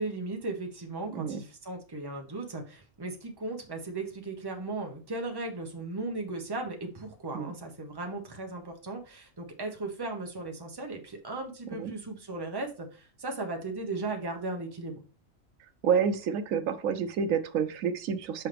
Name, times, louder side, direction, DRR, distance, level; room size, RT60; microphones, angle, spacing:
voice 1, 0.0-15.0, right 2 dB, 20° right, 2 dB, 1.0 m, -36 dB
voice 2, 15.8-18.5, right 7 dB, 90° right, 11 dB, 1.1 m, -29 dB
5.9 x 5.5 x 3.4 m, 0.37 s
omnidirectional pair, 1.3 m